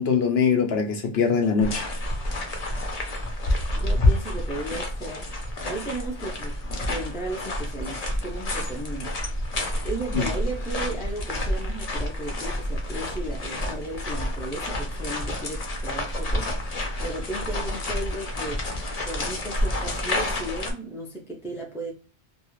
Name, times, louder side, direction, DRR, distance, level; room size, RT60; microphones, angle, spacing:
voice 1, 0.0-1.9 10.1-10.3, left 6 dB, 80° left, 0.9 m, -22 dB
sound 1, 1.6-20.7, left 1 dB, 45° left, 0.7 m, -29 dB
voice 2, 3.7-5.3 5.6-9.1 9.8-16.5 17.0-18.6 19.0-21.9, right 2 dB, 5° right, 0.3 m, -35 dB
2.4 x 2.4 x 3.0 m
omnidirectional pair, 1.0 m